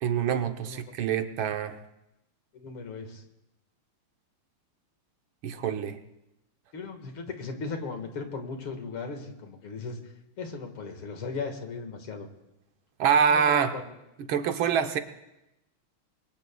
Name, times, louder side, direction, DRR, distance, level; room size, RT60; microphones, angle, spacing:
voice 1, 0.0-1.8 5.4-6.0 13.0-13.7 14.3-15.0, right 7 dB, 70° right, 7 dB, 1.7 m, -25 dB
voice 2, 2.5-3.2 6.7-12.3 13.3-13.9, left 4 dB, 75° left, 5 dB, 2.6 m, -37 dB
27.5 x 22.0 x 2.3 m, 0.90 s
omnidirectional pair, 2.4 m